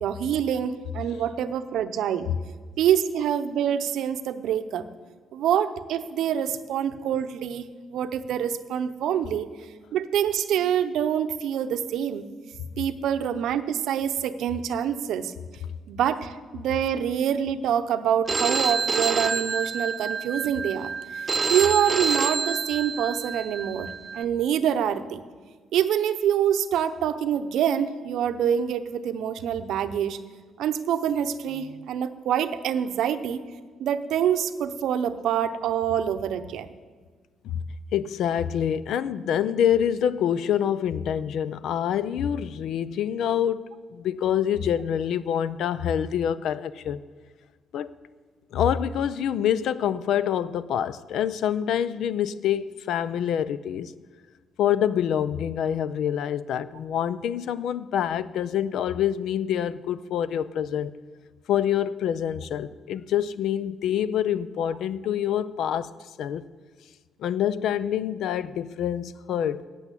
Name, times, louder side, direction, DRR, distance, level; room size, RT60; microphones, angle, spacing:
voice 1, 0.0-2.3 2.8-4.9 5.3-9.5 9.9-12.2 12.8-15.3 15.9-25.2 25.7-30.2 30.6-33.4 33.8-36.7, right 9 dB, 80° right, 0.7 m, -26 dB
Telephone, 18.3-24.2, right 4 dB, 30° right, 0.5 m, -28 dB
voice 2, 37.9-43.6 43.9-47.0 47.7-47.9 48.5-53.9 54.6-60.9 61.5-65.9 66.2-66.5 67.2-69.6, left 9 dB, 75° left, 0.4 m, -26 dB
9.1 x 8.3 x 8.2 m
cardioid pair, 90°, 0 cm